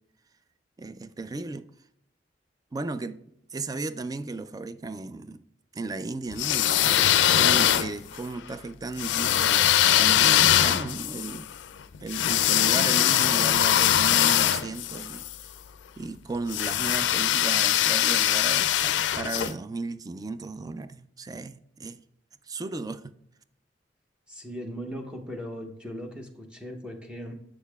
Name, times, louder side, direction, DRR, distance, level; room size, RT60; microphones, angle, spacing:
voice 1, 0.8-1.7 2.7-3.2 3.5-5.4 5.7-7.0 7.3-11.5 12.0-15.3 16.0-22.0 22.5-23.1, right 3 dB, 20° right, 0.3 m, -35 dB
sound 1, 6.3-8.2 9.0-15.3 16.5-19.5, left 11 dB, 85° left, 0.4 m, -22 dB
voice 2, 24.3-27.3, equal, 5° right, 0.8 m, -38 dB
7.3 x 6.6 x 2.3 m
head